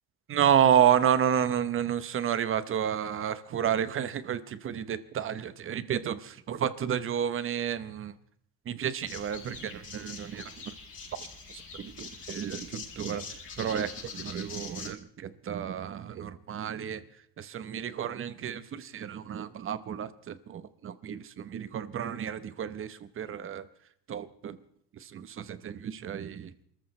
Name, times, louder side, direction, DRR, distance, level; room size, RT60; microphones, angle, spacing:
voice 1, 0.3-8.1 8.7-10.5 11.8-13.3 13.6-17.0 17.4-23.6 24.1-24.6 25.1-26.5, right 9 dB, 35° right, 13 dB, 1.0 m, -30 dB
sound 1, 9.0-14.9, left 5 dB, 35° left, 5.3 m, -43 dB
28.5 x 14.0 x 3.3 m, 0.68 s
cardioid pair, 145°, 35 cm